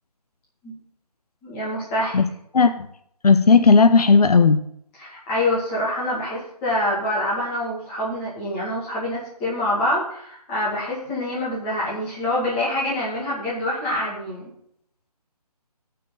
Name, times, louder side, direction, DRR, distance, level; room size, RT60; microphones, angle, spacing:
voice 1, 1.4-2.2 5.0-14.5, left 1 dB, 10° left, -6 dB, 2.2 m, -26 dB
voice 2, 2.5-2.9 3.2-4.6, left 4 dB, 70° left, 10 dB, 0.8 m, -14 dB
16.5 x 6.0 x 3.9 m, 0.70 s
hypercardioid pair, 170°, 20 cm